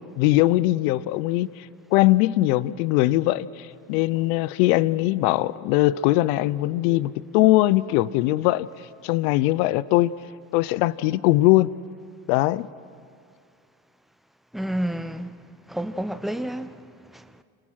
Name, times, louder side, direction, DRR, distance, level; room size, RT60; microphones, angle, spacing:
voice 1, 0.0-1.7 1.9-8.7 9.0-10.1 10.5-11.7 12.3-12.7, left 17 dB, 80° left, 0.7 m, -21 dB
voice 2, 14.5-15.4 15.7-16.8 17.1-17.4, right 1 dB, ahead, 0.9 m, -30 dB
28.5 x 19.5 x 5.9 m
supercardioid pair, 80°, 43 cm